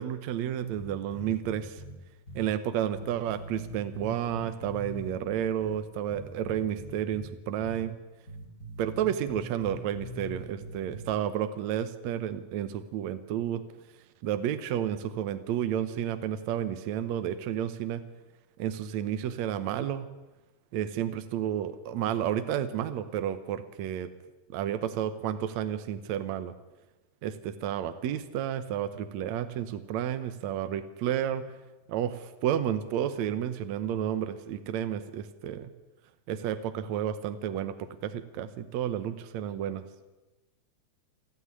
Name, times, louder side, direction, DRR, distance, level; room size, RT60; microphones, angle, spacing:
voice 1, 0.0-1.8 2.4-8.0 8.8-13.6 14.2-18.0 18.6-20.1 20.7-24.1 24.5-26.5 27.2-31.6 31.9-35.7 36.3-39.8, right 10 dB, 70° right, 11 dB, 2.2 m, -31 dB
sound 1, 0.8-2.0 2.3-2.5 2.9-5.8 6.1-7.3 7.6-7.8 8.3-11.1, equal, 30° left, 3.5 m, -42 dB
28.5 x 9.9 x 9.7 m, 1.1 s
omnidirectional pair, 3.4 m